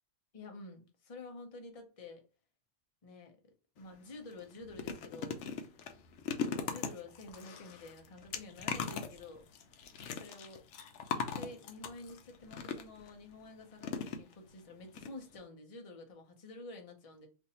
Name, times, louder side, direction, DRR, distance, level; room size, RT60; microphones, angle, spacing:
voice 1, 0.3-2.2 3.0-3.4 3.8-5.4 6.4-9.4 10.1-10.6 11.1-17.3, left 2 dB, 35° left, 0.7 m, -49 dB
sound 1, 3.8-3.9 4.3-13.1 13.8-14.6 14.9-15.1 15.3-15.4, left 6 dB, 80° left, 0.9 m, -40 dB
2.6 x 2.6 x 4.1 m
omnidirectional pair, 1.2 m